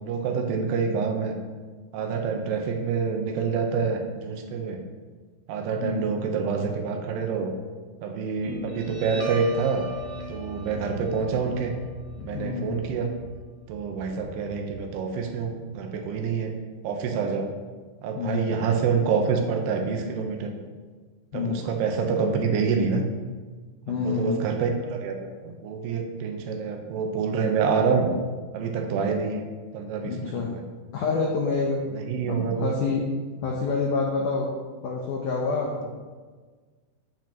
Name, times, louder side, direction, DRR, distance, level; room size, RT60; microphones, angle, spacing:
voice 1, 0.0-1.4 1.9-4.8 5.5-7.5 8.0-9.9 10.3-11.7 12.2-13.1 13.7-16.5 16.8-17.5 18.0-20.5 21.3-23.0 23.9-28.1 28.5-29.4 29.7-30.6 31.9-32.7 35.8-35.9, right 5 dB, 85° right, 3 dB, 2.9 m, -27 dB
voice 2, 5.7-6.1 12.2-12.8 18.2-18.6 21.3-21.7 23.9-24.5 30.0-30.5 30.9-31.8 32.3-33.1 33.4-34.5 34.8-35.7, left 4 dB, 85° left, -1 dB, 1.8 m, -27 dB
Guitar, 8.4-15.4, equal, 65° right, 1.9 m, -40 dB
8.9 x 8.3 x 3.0 m, 1.4 s
omnidirectional pair, 4.8 m